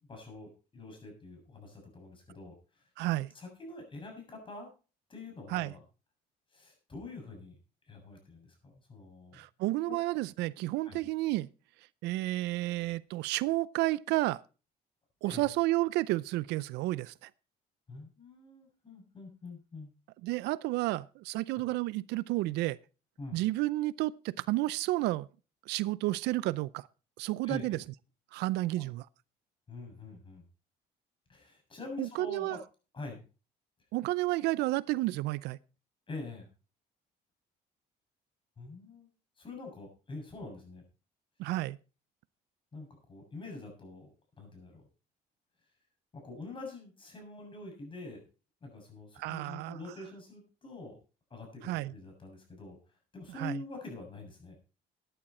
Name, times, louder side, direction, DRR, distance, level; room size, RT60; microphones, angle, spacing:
voice 1, 0.1-4.7 5.1-5.8 6.5-7.6 7.9-9.4 9.9-10.0 10.8-11.0 15.2-15.5 17.9-19.9 21.5-21.6 23.2-23.4 27.4-27.7 28.7-28.8 29.7-30.4 31.3-32.6 32.9-33.2 36.1-36.5 38.6-39.1 39.4-40.8 42.7-44.9 46.1-48.2 48.6-51.0 51.3-52.8 53.1-54.5, left 3 dB, 30° left, 7.0 m, -45 dB
voice 2, 3.0-3.3 5.5-5.7 9.3-11.5 12.0-14.4 15.2-17.3 20.2-22.8 23.3-25.3 25.7-26.9 27.2-27.8 28.3-29.1 32.0-32.6 33.9-35.6 41.4-41.8 49.2-49.8 51.6-51.9 53.4-53.6, right 18 dB, 85° right, 0.5 m, -31 dB
13.5 x 10.0 x 4.3 m
cardioid pair, 110°, 17 cm